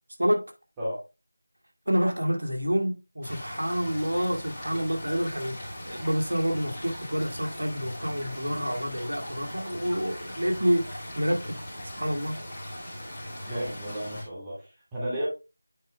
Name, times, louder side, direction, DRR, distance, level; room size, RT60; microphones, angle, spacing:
voice 1, 1.9-11.5 12.0-12.4, equal, 65° right, 2.2 m, -28 dB
sound 1, 3.2-14.2, left 1 dB, 15° left, 3.2 m, -40 dB
voice 2, 13.4-15.3, equal, 10° right, 2.2 m, -33 dB
9.0 x 4.7 x 3.3 m
figure-of-eight pair, 170°, 0 cm